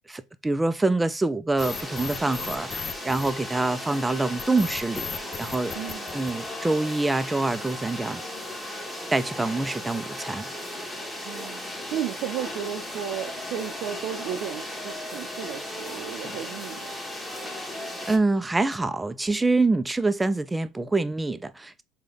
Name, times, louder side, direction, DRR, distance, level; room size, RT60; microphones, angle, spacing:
voice 1, 0.1-5.7 6.1-8.3 9.1-10.5 18.1-21.8, right 2 dB, 15° right, 0.4 m, -26 dB
sound 1, 1.6-3.9 4.4-6.8, left 7 dB, 40° left, 0.5 m, -36 dB
sound 2, 1.6-18.2, left 1 dB, 10° left, 1.1 m, -36 dB
voice 2, 5.7-6.1 11.2-11.6 11.9-17.0, right 9 dB, 70° right, 0.5 m, -34 dB
3.8 x 2.2 x 3.3 m
supercardioid pair, 85°, 0 cm